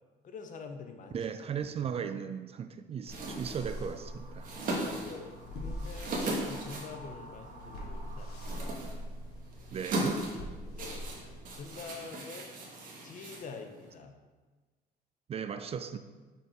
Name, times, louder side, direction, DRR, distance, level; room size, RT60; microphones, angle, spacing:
voice 1, 0.2-1.2 3.3-3.6 4.9-8.9 10.8-11.1 11.6-12.5 13.0-14.1, left 5 dB, 50° left, 6 dB, 0.7 m, -46 dB
voice 2, 1.1-4.5 9.7-10.3 15.3-16.0, right 7 dB, 35° right, 10 dB, 0.4 m, -37 dB
sound 1, 3.0-13.9, right 1 dB, 55° right, 1.4 m, -39 dB
sound 2, 3.1-12.0, equal, 80° left, 1.5 m, -44 dB
sound 3, 3.2-8.6, right 1 dB, 75° right, 1.5 m, -53 dB
5.2 x 4.4 x 4.9 m, 1.3 s
cardioid pair, 110°, 17 cm